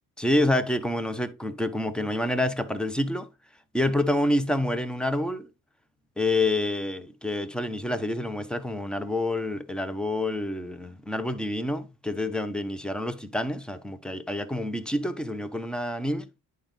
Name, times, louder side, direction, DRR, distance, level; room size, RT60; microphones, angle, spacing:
voice 1, 0.2-3.3 3.7-5.5 6.2-16.3, left 1 dB, ahead, 0.6 m, -27 dB
10.5 x 4.5 x 3.7 m
cardioid pair, 160°, 38 cm